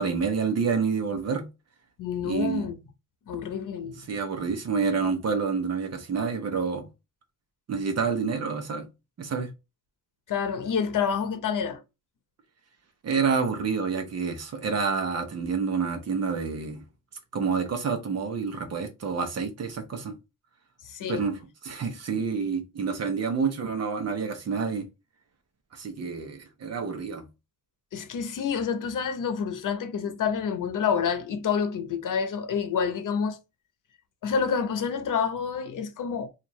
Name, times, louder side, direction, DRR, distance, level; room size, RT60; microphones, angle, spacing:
voice 1, 0.0-1.5 2.2-2.7 4.1-6.9 7.7-8.9 9.2-9.5 13.0-16.8 17.3-20.1 21.1-21.4 21.6-24.9 25.7-27.3, right 5 dB, 50° right, 0.9 m, -28 dB
voice 2, 2.0-2.8 3.3-4.1 10.3-11.8 20.8-21.2 27.9-33.4 34.2-36.3, left 6 dB, 65° left, 0.8 m, -28 dB
4.4 x 2.5 x 3.1 m
wide cardioid pair, 150°, 33 cm